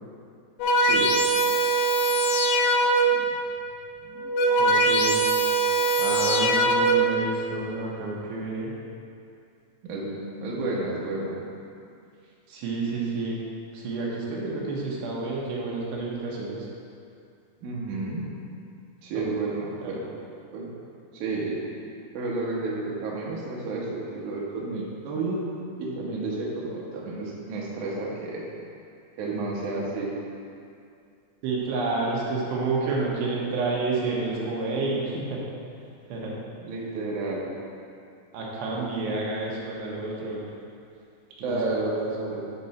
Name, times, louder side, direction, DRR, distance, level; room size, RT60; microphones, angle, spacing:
sound 1, 0.6-3.4 4.1-7.3, right 2 dB, 85° left, 2.7 m, -22 dB
voice 1, 0.8-1.1 9.8-11.4 17.6-18.3 19.0-20.1 20.5-20.7 21.1-21.6 22.1-25.5 25.8-28.5 29.2-30.1 36.6-37.5 41.4-42.5, right 3 dB, 90° right, -4 dB, 1.7 m, -31 dB
voice 2, 4.6-5.2 6.0-8.7 12.5-13.4 13.7-16.6 19.1-19.2 19.8-19.9 31.4-35.4 36.1-36.3 38.3-40.4 41.4-41.8, right 3 dB, 70° right, -4 dB, 3.0 m, -29 dB
9.1 x 4.6 x 4.2 m, 2.4 s
omnidirectional pair, 5.4 m